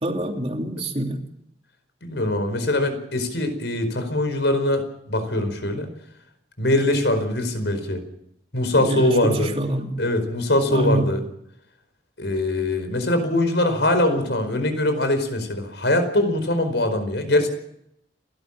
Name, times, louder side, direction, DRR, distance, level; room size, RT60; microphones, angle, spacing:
voice 1, 0.0-1.2 8.8-9.9 10.7-11.1, right 1 dB, 35° right, 3 dB, 2.9 m, -25 dB
voice 2, 2.0-5.9 6.6-8.0 8.5-9.5 10.0-11.3 12.2-17.5, left 1 dB, 85° left, 8 dB, 4.9 m, -22 dB
30.0 x 12.5 x 7.4 m, 0.75 s
head